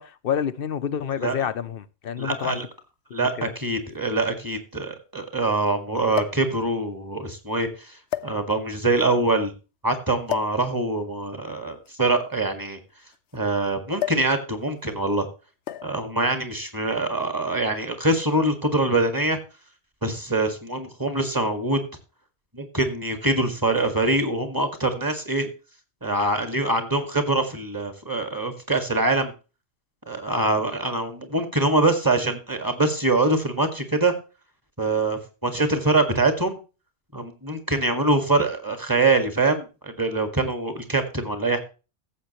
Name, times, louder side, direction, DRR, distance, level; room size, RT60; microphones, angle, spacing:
voice 1, 0.0-2.6 3.4-3.5, left 8 dB, 60° left, 0.8 m, -28 dB
voice 2, 2.2-2.7 3.1-8.0 8.2-9.5 9.8-12.8 13.3-15.3 15.8-19.4 20.0-21.8 22.5-25.5 26.0-29.3 30.1-34.1 34.8-36.6 37.1-41.6, right 2 dB, 20° right, 1.8 m, -24 dB
sound 1, 2.4-2.5 3.6-3.7 3.9-4.0 6.1-6.5 7.3-7.5 8.1-8.8 10.3-10.6 11.7-13.4 14.0-14.4 14.6-14.9 15.7-16.0 17.0-17.3, left 12 dB, 80° left, 1.0 m, -32 dB
15.0 x 7.5 x 3.0 m
omnidirectional pair, 1.1 m